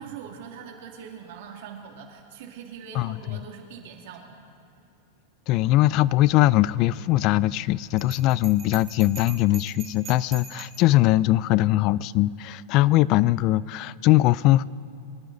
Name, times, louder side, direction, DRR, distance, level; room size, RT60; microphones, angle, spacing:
voice 1, 0.0-4.4, right 7 dB, 65° right, 2 dB, 2.4 m, -42 dB
voice 2, 2.9-3.4 5.5-14.6, left 16 dB, 40° left, 21 dB, 0.3 m, -21 dB
Bell, 8.0-10.9, right 6 dB, 25° right, 2.0 m, -43 dB
24.0 x 12.0 x 4.0 m, 2.7 s
supercardioid pair, 140°, 0 cm